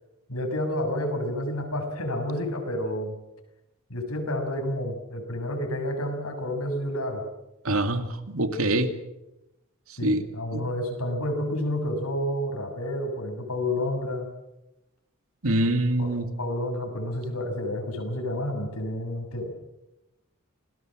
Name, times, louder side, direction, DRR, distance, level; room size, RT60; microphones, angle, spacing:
voice 1, 0.3-3.2 3.9-7.3 10.0-14.3 16.0-19.5, left 1 dB, 90° left, 4 dB, 6.8 m, -30 dB
voice 2, 7.6-8.9 10.0-10.2 10.5-10.6 15.4-16.3, right 1 dB, 75° right, 8 dB, 2.4 m, -24 dB
28.0 x 20.0 x 7.6 m, 0.94 s
head